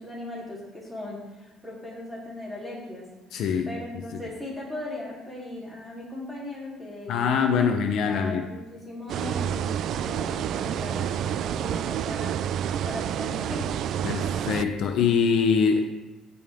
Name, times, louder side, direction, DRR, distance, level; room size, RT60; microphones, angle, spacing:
voice 1, 0.0-3.1 3.3-13.7, left 1 dB, ahead, -7 dB, 3.4 m, -38 dB
voice 2, 3.3-3.7 4.1-4.2 7.1-8.5 14.0-15.8, left 6 dB, 60° left, 5 dB, 0.8 m, -23 dB
sound 1, 9.1-14.6, right 9 dB, 55° right, 0.3 m, -29 dB
sound 2, 9.9-15.2, left 2 dB, 75° left, 2.3 m, -48 dB
15.5 x 5.4 x 3.7 m, 1.1 s
cardioid pair, 140°, 0 cm